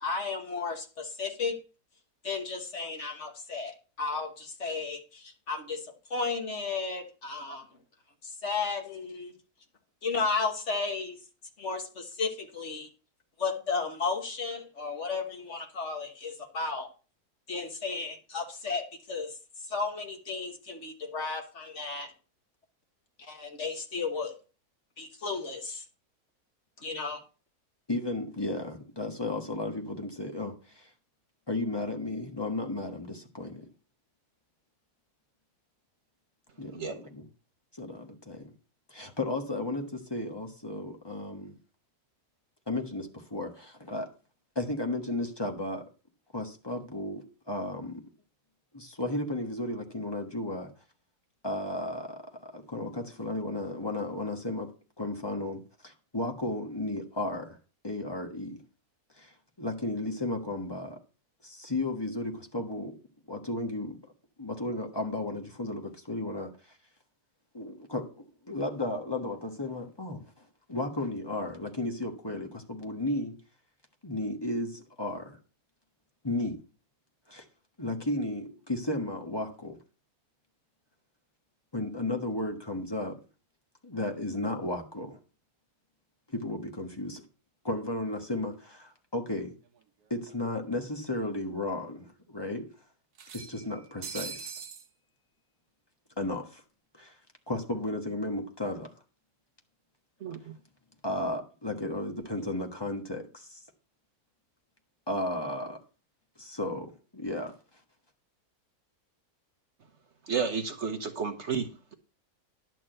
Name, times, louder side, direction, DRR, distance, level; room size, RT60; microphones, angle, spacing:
voice 1, 0.0-1.6 2.2-5.8 6.1-7.6 8.4-9.3 10.0-11.2 11.6-12.9 13.4-16.9 17.5-19.3 19.7-22.1 23.3-24.3 25.0-25.8 26.8-27.2, left 4 dB, 50° left, 1.7 m, -33 dB
voice 2, 27.9-30.9 31.5-33.7 36.6-37.3 37.8-38.5 38.9-41.6 42.7-44.1 44.5-45.8 46.3-48.0 48.7-50.7 51.4-54.7 55.0-57.6 57.8-58.6 59.2-61.0 61.4-62.9 63.3-64.0 64.4-66.5 67.5-73.4 74.0-75.4 76.2-76.6 77.3-77.4 77.8-79.8 81.7-83.2 83.8-85.2 86.3-87.2 87.6-89.5 90.1-92.7 93.3-94.6 96.2-96.6 96.9-97.2 97.5-98.9 101.0-103.6 105.1-105.8 106.4-107.5, left 2 dB, 15° left, 1.3 m, -34 dB
sound 1, 89.8-89.9 90.1-90.2 91.3-91.4 91.8-91.9 93.2-94.9, right 6 dB, 80° right, 1.3 m, -42 dB
voice 3, 110.3-111.9, right 6 dB, 50° right, 1.1 m, -32 dB
11.0 x 4.4 x 7.8 m
omnidirectional pair, 1.6 m